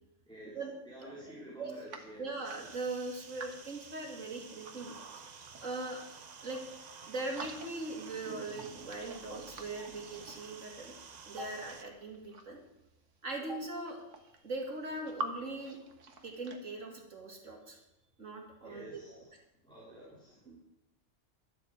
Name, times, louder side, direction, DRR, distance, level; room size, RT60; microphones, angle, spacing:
voice 1, 0.3-0.6 0.8-2.3 18.6-19.3 19.6-20.4, equal, 5° left, -6 dB, 4.0 m, -49 dB
sound 1, 1.9-4.8 5.2-6.8 7.1-8.0 8.2-10.8 11.5-12.7 13.4-13.5 13.7-15.3 15.6-16.6, right 3 dB, 70° right, 1.8 m, -47 dB
voice 2, 2.2-4.9 5.6-6.0 6.4-6.6 7.0-10.9 11.3-12.6 13.2-14.0 14.4-15.8 16.2-17.8 18.2-19.2 20.5-20.6, right 2 dB, 90° right, 0 dB, 2.9 m, -40 dB
sound 2, 2.4-11.8, right 5 dB, 40° right, 0.8 m, -51 dB
12.5 x 9.1 x 7.9 m, 0.86 s
omnidirectional pair, 1.3 m